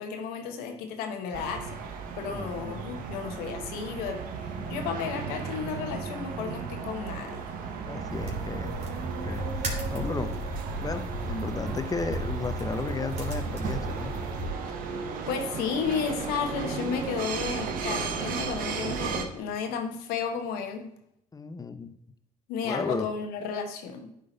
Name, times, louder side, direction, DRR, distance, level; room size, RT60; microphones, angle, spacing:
voice 1, 0.0-1.8 2.2-4.2 4.7-7.4 14.8-15.0 15.3-20.9 22.5-24.1, left 6 dB, 85° left, 6 dB, 1.0 m, -33 dB
sound 1, 1.3-19.3, right 5 dB, 70° right, 1.0 m, -35 dB
voice 2, 7.9-8.9 9.2-10.4 10.8-14.1 21.3-21.9 22.6-23.1, left 4 dB, 25° left, 10 dB, 0.8 m, -34 dB
sound 2, 8.1-14.5, right 2 dB, 50° right, 2.7 m, -34 dB
11.0 x 3.8 x 4.0 m, 0.77 s
supercardioid pair, 60°, 15 cm